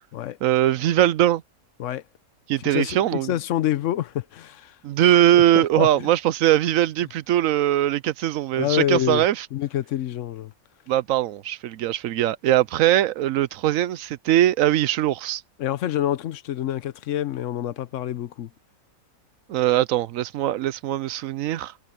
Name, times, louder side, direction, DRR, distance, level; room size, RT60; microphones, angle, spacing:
voice 1, 0.4-1.4 2.5-3.3 4.8-9.5 10.9-15.4 19.5-21.7, right 12 dB, 70° right, 0.9 m, -21 dB
voice 2, 2.6-4.7 5.0-6.1 8.5-9.2 9.5-10.5 15.6-18.5, left 12 dB, 65° left, 1.0 m, -27 dB
omnidirectional pair, 1.5 m